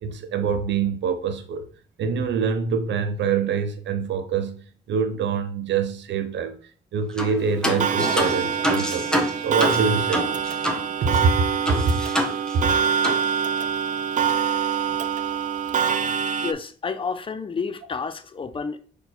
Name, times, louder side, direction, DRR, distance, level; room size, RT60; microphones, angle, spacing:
voice 1, 0.0-1.7 2.0-6.6 6.9-10.4 11.0-11.3 11.7-11.9 12.5-12.7, right 5 dB, 65° right, 0.8 m, -25 dB
sound 1, 7.2-7.4 7.6-10.8 11.1-11.2 11.7-12.8 13.0-13.2, equal, 5° left, 0.8 m, -26 dB
Clock, 7.8-16.5, right 7 dB, 40° right, 0.4 m, -25 dB
voice 2, 16.4-18.8, left 5 dB, 25° left, 0.5 m, -30 dB
4.5 x 2.7 x 4.2 m
cardioid pair, 90°, 20 cm